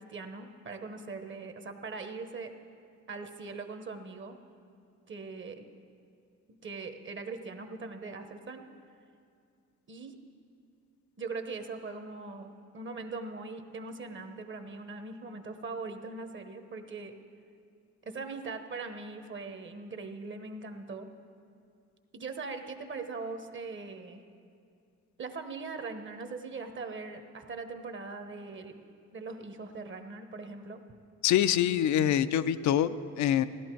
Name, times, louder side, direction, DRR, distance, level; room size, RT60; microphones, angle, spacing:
voice 1, 0.0-2.5 3.1-4.4 5.1-5.6 6.5-8.6 9.9-10.2 11.2-17.1 18.0-21.1 22.1-24.2 25.2-28.7 29.1-30.8, right 4 dB, 40° right, 7 dB, 1.1 m, -41 dB
voice 2, 31.2-33.4, left 10 dB, 70° left, 14 dB, 0.5 m, -25 dB
16.0 x 11.5 x 4.6 m, 2.3 s
cardioid pair, 90°, 30 cm